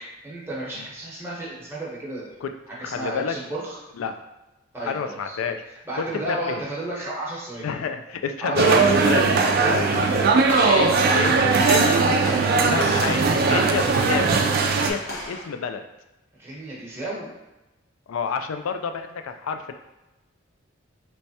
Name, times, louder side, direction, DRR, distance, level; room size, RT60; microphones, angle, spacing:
voice 1, 0.2-3.8 4.7-5.4 5.8-7.7 8.4-8.8 9.6-10.1 11.8-12.2 16.4-17.3, right 1 dB, 10° right, -7 dB, 0.9 m, -32 dB
voice 2, 2.8-3.3 4.0-4.1 4.9-5.6 6.0-6.6 7.6-8.8 9.0-9.2 9.7-11.4 11.7-12.0 12.7-14.4 14.7-15.0 15.3-15.8 18.1-19.7, left 6 dB, 90° left, 7 dB, 0.3 m, -29 dB
sound 1, 8.6-14.9, right 4 dB, 45° right, 0.3 m, -19 dB
Walk footsteps / Slam, 9.9-15.5, left 1 dB, 60° left, 1.1 m, -36 dB
3.3 x 3.2 x 2.7 m, 0.99 s
head